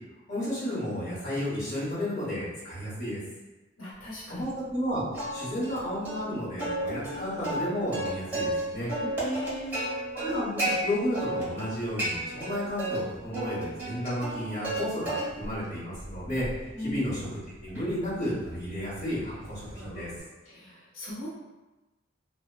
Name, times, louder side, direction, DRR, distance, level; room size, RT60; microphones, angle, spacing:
voice 1, 0.3-3.2 4.3-5.0 5.3-8.9 10.1-20.1, equal, 35° left, -10 dB, 1.1 m, -32 dB
voice 2, 3.8-4.4 9.2-9.9 16.7-17.0 20.5-21.3, equal, 90° left, -7 dB, 0.7 m, -37 dB
Plucked string instrument, 5.1-5.8 6.1-6.2 6.6-8.6 8.9-10.7 11.1-11.7 12.0-13.0 13.3-14.8 15.1-15.6 16.0-20.2, right 1 dB, 10° right, 1.1 m, -33 dB
2.9 x 2.0 x 2.2 m, 1.1 s
head